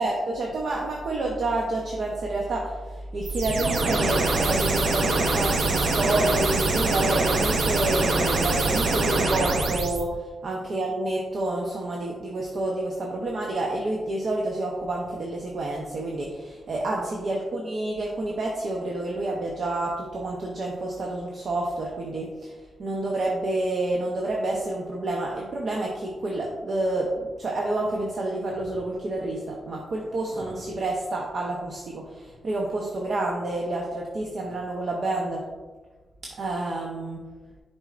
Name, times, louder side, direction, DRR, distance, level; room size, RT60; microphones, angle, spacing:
voice 1, 0.0-35.5 36.2-37.2, right 2 dB, 60° right, -1 dB, 0.8 m, -29 dB
sound 1, 3.2-10.0, right 3 dB, 90° right, 0.9 m, -24 dB
8.0 x 5.5 x 2.5 m, 1.3 s
wide cardioid pair, 135°, 0 cm